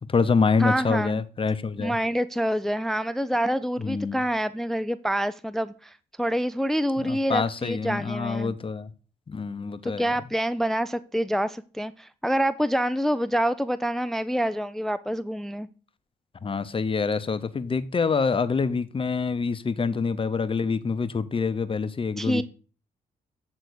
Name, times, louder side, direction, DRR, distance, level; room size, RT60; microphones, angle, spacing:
voice 1, 0.1-2.0 3.8-4.2 7.0-8.9 9.3-10.1 16.4-22.4, left 5 dB, 35° left, 0.8 m, -26 dB
voice 2, 0.6-1.2 1.8-8.5 9.8-15.7 22.2-22.4, equal, ahead, 0.4 m, -27 dB
8.3 x 3.8 x 6.3 m
cardioid pair, 65°, 16 cm